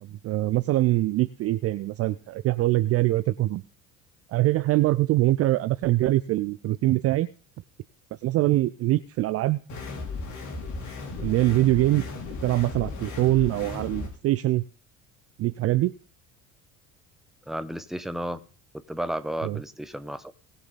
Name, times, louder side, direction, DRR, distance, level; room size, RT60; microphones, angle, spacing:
voice 1, 0.0-3.6 4.3-7.3 8.2-9.6 11.2-12.1 12.4-14.6 15.4-15.9 19.4-19.6, right 16 dB, 35° right, 16 dB, 0.5 m, -23 dB
sound 1, 9.7-14.1, left 3 dB, 45° left, 4.9 m, -36 dB
voice 2, 17.5-18.4 18.7-20.3, right 1 dB, ahead, 12 dB, 0.9 m, -33 dB
19.0 x 6.8 x 4.1 m, 0.39 s
figure-of-eight pair, 65°, 42 cm